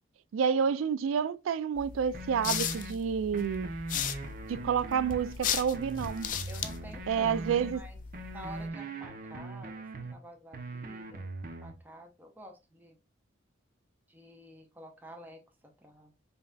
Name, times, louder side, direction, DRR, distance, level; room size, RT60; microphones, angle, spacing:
voice 1, 0.3-3.7 4.5-6.3 7.1-7.8, right 7 dB, 85° right, 0.3 m, -29 dB
sound 1, 1.8-8.7, left 8 dB, 45° left, 0.4 m, -37 dB
sound 2, 2.1-2.9 3.3-5.3 5.7-7.7 8.1-10.1 10.5-11.7, right 2 dB, 45° right, 0.6 m, -41 dB
voice 2, 6.5-7.4 7.7-8.0 8.3-9.7 10.0-11.3 11.6-13.0 14.1-15.4 15.8-16.1, equal, 10° right, 0.7 m, -49 dB
5.3 x 2.7 x 2.2 m
head